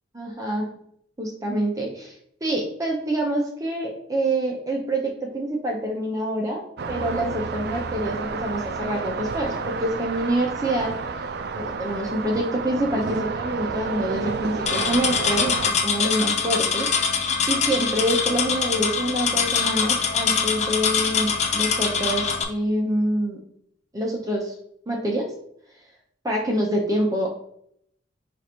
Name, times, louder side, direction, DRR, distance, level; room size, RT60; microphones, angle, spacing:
voice 1, 0.1-0.7 1.2-2.1 2.4-11.0 11.6-17.2 17.5-23.4 23.9-24.5 24.9-25.3 26.2-27.3, right 1 dB, 20° right, 0 dB, 0.6 m, -26 dB
sound 1, 6.8-15.7, right 4 dB, 55° right, 0.4 m, -30 dB
sound 2, 14.7-22.4, left 6 dB, 35° left, 0.5 m, -23 dB
4.7 x 2.5 x 4.3 m, 0.69 s
head